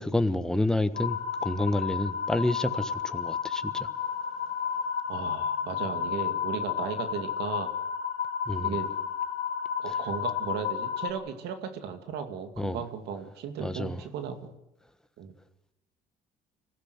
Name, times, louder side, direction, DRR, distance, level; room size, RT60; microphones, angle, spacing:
voice 1, 0.0-3.9 8.5-8.8 12.6-12.8 13.6-14.0, left 1 dB, 5° left, 1.4 m, -29 dB
sound 1, 0.9-11.1, left 8 dB, 60° left, 3.4 m, -32 dB
voice 2, 5.1-7.7 8.6-8.9 9.8-14.6 15.2-15.3, right 7 dB, 80° right, 2.4 m, -36 dB
25.0 x 16.0 x 8.1 m
cardioid pair, 110°, 17 cm